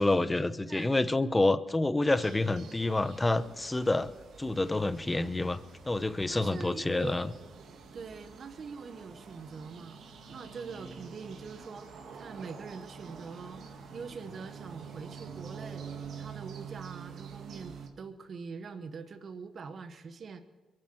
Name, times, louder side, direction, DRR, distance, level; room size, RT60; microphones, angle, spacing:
voice 1, 0.0-4.1 4.4-5.6 5.9-7.3, left 2 dB, 20° left, 14 dB, 0.8 m, -28 dB
sound 1, 2.1-17.9, right 6 dB, 75° right, 1.8 m, -47 dB
voice 2, 6.3-7.3 7.9-10.0 10.3-13.6 13.9-15.9 16.2-20.4, right 5 dB, 55° right, 9 dB, 1.0 m, -44 dB
22.5 x 7.7 x 7.7 m, 1.3 s
cardioid pair, 75°, 0 cm